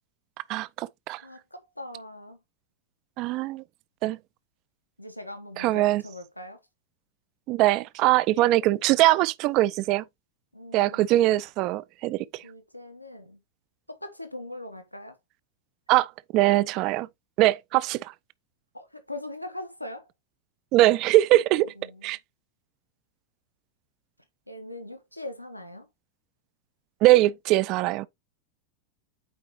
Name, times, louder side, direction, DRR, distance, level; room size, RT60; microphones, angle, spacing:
voice 1, 0.5-1.2 3.2-3.6 4.0-4.2 5.6-6.0 7.5-10.0 10.7-12.4 15.9-17.1 17.4-18.1 20.7-21.7 22.0-22.2 27.0-28.1, right 16 dB, 40° right, 0.4 m, -22 dB
voice 2, 1.2-2.4 5.0-6.6 10.5-11.1 12.4-13.4 13.9-15.2 18.7-20.1 21.3-21.4 21.7-22.1 24.5-25.9, left 1 dB, 90° left, 1.1 m, -41 dB
8.6 x 4.6 x 3.0 m
figure-of-eight pair, 90°, 0 cm